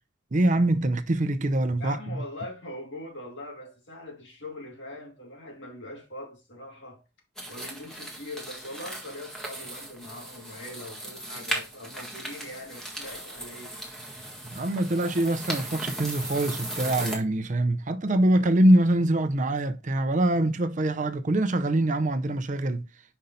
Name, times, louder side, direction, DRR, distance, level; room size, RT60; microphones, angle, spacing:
voice 1, 0.3-2.0 14.5-22.9, right 1 dB, 40° right, 0.6 m, -24 dB
voice 2, 1.8-7.0 7.5-13.7, left 1 dB, 70° left, 2.5 m, -42 dB
sound 1, 7.4-17.2, right 1 dB, 5° left, 1.6 m, -37 dB
5.4 x 5.4 x 3.9 m
head